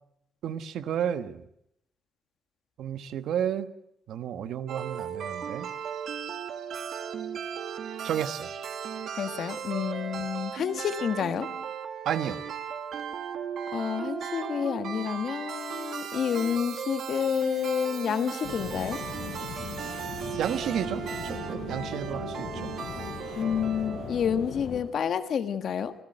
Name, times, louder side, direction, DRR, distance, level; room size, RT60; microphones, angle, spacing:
voice 1, 0.4-1.4 2.8-3.7 4.1-5.7 8.0-8.5 10.2-10.3 12.0-12.4 20.4-22.7, right 9 dB, 70° right, 12 dB, 1.2 m, -32 dB
sound 1, 4.7-24.6, right 7 dB, 55° right, 1.9 m, -36 dB
voice 2, 9.1-11.5 13.7-19.0 23.4-25.9, left 8 dB, 50° left, 10 dB, 1.5 m, -29 dB
sound 2, 18.4-24.8, left 6 dB, 80° left, 6.0 m, -39 dB
26.0 x 16.5 x 7.9 m, 0.77 s
cardioid pair, 170°, 0 cm